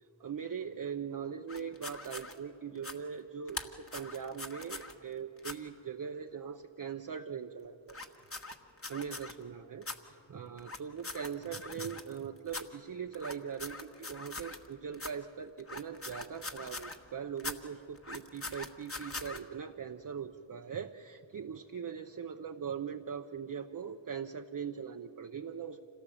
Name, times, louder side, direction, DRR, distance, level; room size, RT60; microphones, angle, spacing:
voice 1, 0.2-7.9 8.9-25.8, right 7 dB, 40° right, 4 dB, 0.7 m, -41 dB
sound 1, 1.5-2.3 2.7-3.0 3.5-4.9 5.4-5.5 7.9-9.3 9.8-10.0 10.6-12.2 12.5-12.6 13.1-14.7 14.9-15.1 15.6-17.0 17.4-17.6 17.9-19.4, left 3 dB, 30° left, 1.4 m, -42 dB
26.0 x 17.5 x 7.8 m, 3.0 s
cardioid pair, 65°, 48 cm